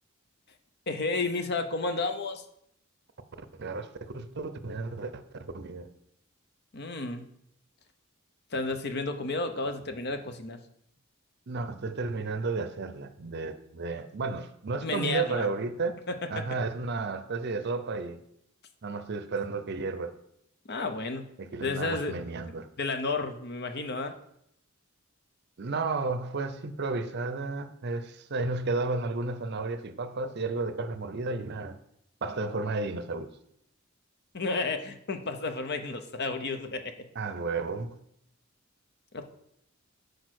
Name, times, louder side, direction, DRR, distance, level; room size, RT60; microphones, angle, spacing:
voice 1, 0.9-2.4 6.7-7.3 8.5-10.6 14.8-15.5 16.1-16.5 20.7-21.3 21.6-22.2 22.8-24.1 34.3-37.1 39.1-39.3, left 3 dB, 50° left, 0.7 m, -32 dB
voice 2, 3.4-5.9 11.5-16.0 16.3-18.2 18.8-20.2 21.4-22.7 25.6-31.8 32.2-33.3 37.2-38.0, right 3 dB, 50° right, 0.6 m, -33 dB
6.3 x 4.9 x 6.3 m
head